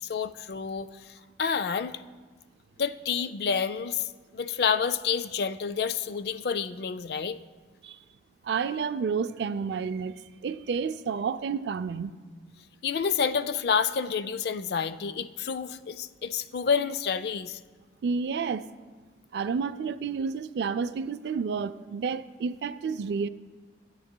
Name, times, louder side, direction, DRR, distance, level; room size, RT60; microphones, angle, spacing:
voice 1, 0.0-2.0 2.8-7.4 12.8-17.6, left 6 dB, 55° left, 0.3 m, -29 dB
voice 2, 8.4-10.1 10.4-12.2 18.0-18.7 19.3-23.3, right 5 dB, 65° right, 0.3 m, -30 dB
15.5 x 8.7 x 2.2 m
head